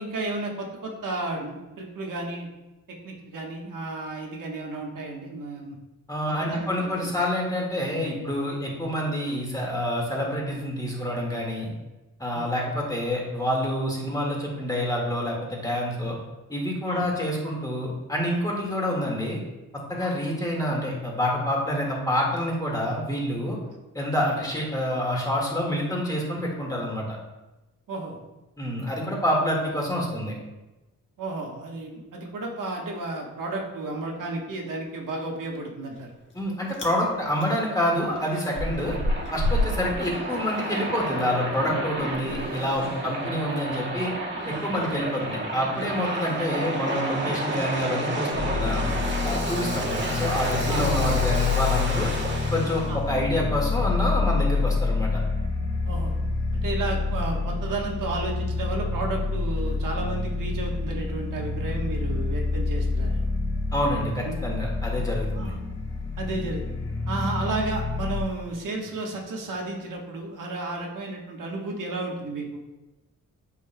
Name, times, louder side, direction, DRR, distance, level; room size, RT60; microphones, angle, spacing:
voice 1, 0.0-2.5 3.0-5.8 6.4-7.1 12.3-12.5 16.8-17.1 20.0-20.1 23.7-23.8 24.3-24.4 27.9-28.2 31.2-36.1 42.8-43.1 44.8-44.9 49.5-49.7 50.7-51.0 52.8-53.0 55.8-56.1 56.6-63.3 64.2-64.4 65.3-65.6 66.2-66.8 67.1-72.6, right 2 dB, 70° right, 0 dB, 1.2 m, -33 dB
voice 2, 6.1-11.7 12.2-16.2 16.5-19.4 19.7-23.6 23.9-27.2 28.6-30.3 36.3-39.0 39.3-44.1 44.5-48.9 49.2-52.1 52.5-55.2 63.7-65.5, left 1 dB, 10° left, -3 dB, 1.7 m, -27 dB
Chewing mastication, 35.9-36.4 36.7-37.0 37.4-41.1 41.4-46.8, left 1 dB, 35° left, 1.5 m, -32 dB
Waves surf, 37.2-52.9, right 1 dB, 35° right, 1.7 m, -31 dB
sound 1, 48.3-68.2, left 4 dB, 85° left, 1.6 m, -27 dB
8.4 x 5.3 x 2.2 m, 1.0 s
cardioid pair, 105°, 33 cm